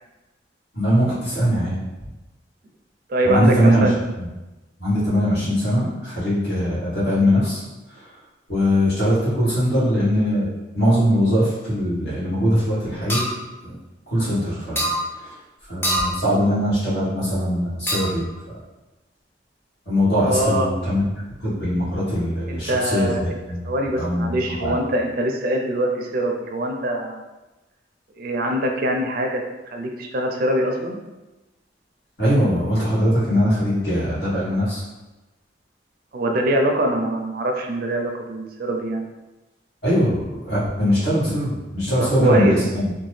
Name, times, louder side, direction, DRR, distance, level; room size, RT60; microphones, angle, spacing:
voice 1, 0.7-1.7 3.2-3.8 4.2-4.3 4.8-7.6 8.5-10.5 10.7-13.3 13.6-13.8 14.1-15.4 15.7-18.3 19.8-21.0 21.4-23.7 23.9-24.7 32.2-34.8 39.8-42.9, equal, 65° left, -9 dB, 1.4 m, -21 dB
voice 2, 3.1-4.0 20.3-20.8 22.5-23.4 23.6-27.2 28.2-29.4 29.7-31.0 36.1-39.1 42.0-42.6, right 1 dB, 55° right, 2 dB, 0.4 m, -23 dB
sound 1, 13.1-13.3 14.8-15.0 15.8-16.2 17.9-18.2, equal, 15° left, 0.6 m, -23 dB
2.8 x 2.2 x 3.1 m, 1.1 s
head